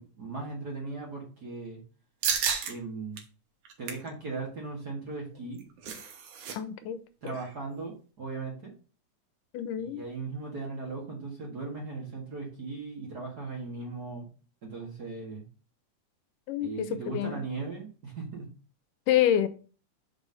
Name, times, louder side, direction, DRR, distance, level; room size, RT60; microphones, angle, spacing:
voice 1, 0.0-1.8 2.6-3.2 3.8-5.6 7.2-8.7 9.8-14.3 14.6-15.4 16.6-18.5, right 3 dB, 40° right, 1.7 m, -38 dB
sound 1, 2.2-2.7 3.2-3.3 3.6-4.1 5.4-6.6 6.8-6.9 7.3-7.5, right 6 dB, 70° right, 2.6 m, -32 dB
voice 2, 6.5-7.0 9.5-10.0 16.5-17.4 19.1-19.5, left 11 dB, 80° left, 2.3 m, -27 dB
5.4 x 5.2 x 6.3 m
omnidirectional pair, 3.7 m